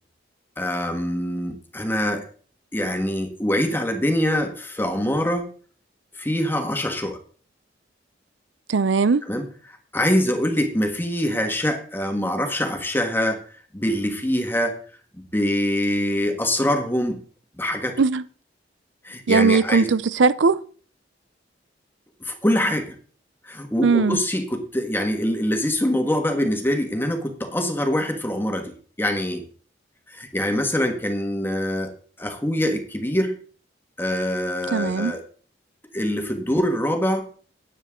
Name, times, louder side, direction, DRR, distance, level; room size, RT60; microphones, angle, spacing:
voice 1, 0.6-2.2 2.7-5.5 6.1-7.2 9.3-13.4 13.7-14.8 15.2-17.2 17.6-18.0 19.0-19.9 22.2-23.0 23.4-29.4 30.1-31.9 32.2-33.3 34.0-35.2 35.9-37.3, left 1 dB, 10° left, 1.6 m, -24 dB
voice 2, 8.7-9.2 18.0-18.2 19.3-20.6 23.8-24.2 34.7-35.1, right 4 dB, 80° right, 0.6 m, -19 dB
13.0 x 9.4 x 3.7 m
head